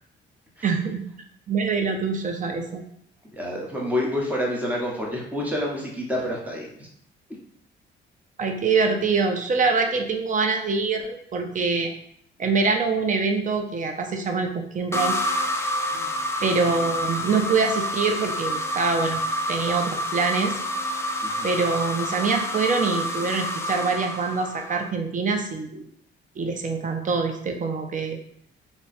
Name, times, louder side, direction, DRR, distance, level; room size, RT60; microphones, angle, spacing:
voice 1, 0.6-1.0 1.5-2.8 8.4-11.9 12.4-15.2 16.4-19.2 19.5-20.5 21.4-25.8 26.4-28.2, right 4 dB, 40° right, 4 dB, 0.6 m, -24 dB
voice 2, 3.3-6.9 15.9-16.1 21.2-21.5, left 1 dB, 5° right, -3 dB, 1.1 m, -28 dB
sound 1, 14.9-24.9, equal, 15° left, 0.4 m, -28 dB
2.9 x 2.3 x 4.2 m, 0.68 s
cardioid pair, 90°, 20 cm